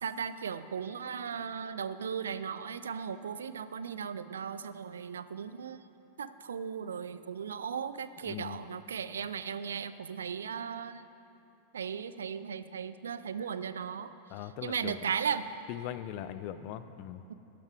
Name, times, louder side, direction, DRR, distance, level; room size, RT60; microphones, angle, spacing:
voice 1, 0.0-5.8 6.2-11.1 11.7-14.1 14.6-15.5 17.3-17.4, right 7 dB, 65° right, 14 dB, 0.4 m, -36 dB
voice 2, 8.3-8.6 14.3-15.0 15.7-17.2, left 11 dB, 45° left, 13 dB, 0.5 m, -40 dB
12.0 x 11.5 x 4.7 m, 2.9 s
figure-of-eight pair, 90°, 0 cm